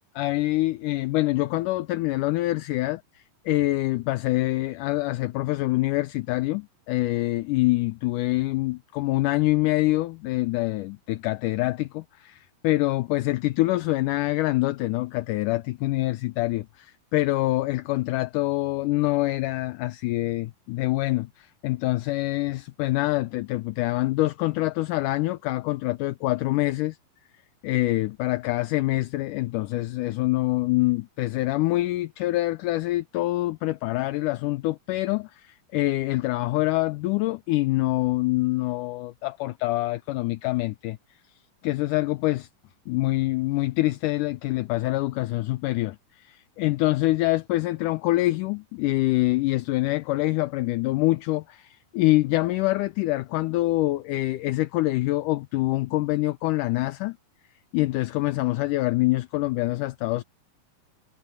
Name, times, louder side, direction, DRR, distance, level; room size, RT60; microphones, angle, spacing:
voice 1, 0.2-27.0 27.6-41.0 41.6-42.5 42.9-57.2 57.7-60.2, left 18 dB, 75° left, 2.0 m, -25 dB
omnidirectional pair, 4.2 m